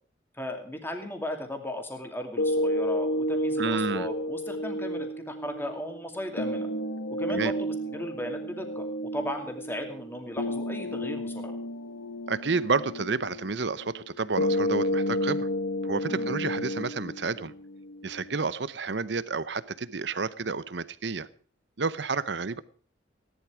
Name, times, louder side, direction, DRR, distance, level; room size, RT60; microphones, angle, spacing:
voice 1, 0.3-6.7 7.1-11.6 16.1-16.3, left 1 dB, 10° left, 4 dB, 2.5 m, -36 dB
sound 1, 2.4-18.4, equal, 80° left, 0.9 m, -31 dB
voice 2, 3.6-4.1 7.3-7.5 12.3-15.5 15.8-17.5 18.0-21.3 21.8-22.6, right 4 dB, 65° right, 17 dB, 0.8 m, -30 dB
17.5 x 11.5 x 4.9 m, 0.44 s
head